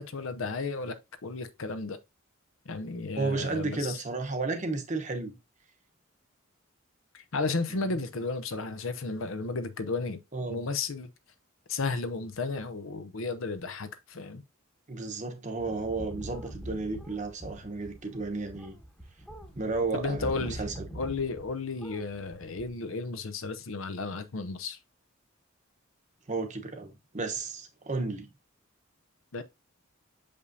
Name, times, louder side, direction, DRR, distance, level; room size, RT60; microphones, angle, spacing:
voice 1, 0.0-2.0 2.7-4.0 7.1-10.2 10.5-11.1 11.7-14.4 19.9-20.6 20.9-24.8 29.3-29.4, left 3 dB, 75° left, 0.7 m, -33 dB
voice 2, 3.2-5.4 7.7-7.9 10.3-10.7 14.9-18.7 19.6-20.7 26.3-28.3, right 3 dB, 35° right, 1.0 m, -33 dB
sound 1, 15.6-21.5 21.8-22.7, right 1 dB, 5° left, 1.0 m, -43 dB
6.7 x 5.3 x 2.7 m
head